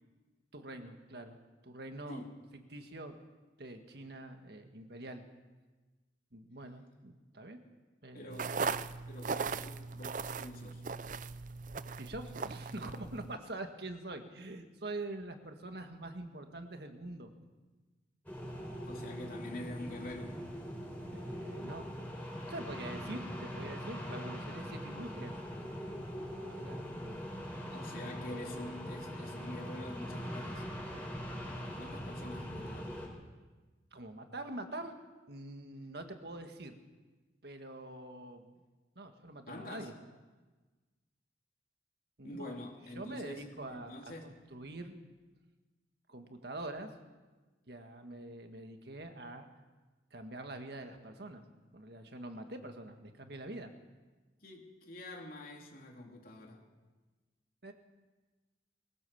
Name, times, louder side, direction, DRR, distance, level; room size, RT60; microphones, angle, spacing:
voice 1, 0.5-1.4 1.6-2.2 2.7-3.2 3.6-5.3 6.3-7.6 8.0-8.4 12.0-17.3 21.1-21.9 22.5-25.6 26.5-27.2 33.9-35.0 35.3-36.8 37.4-38.5 39.0-39.9 42.2-42.6 43.0-45.0 46.1-46.9 47.7-49.5 50.1-51.4 51.7-53.7 57.6-57.7, right 2 dB, 60° right, 6 dB, 1.9 m, -45 dB
voice 2, 8.1-8.6 9.1-10.8 18.8-20.4 27.7-30.7 31.6-32.9 39.5-39.9 42.2-44.4 54.4-56.6, left 1 dB, 50° left, 0 dB, 3.6 m, -46 dB
sound 1, 8.3-13.4, right 4 dB, 45° right, 0.6 m, -38 dB
sound 2, 18.3-33.1, equal, 10° left, 4.8 m, -42 dB
22.5 x 17.0 x 7.2 m, 1.3 s
head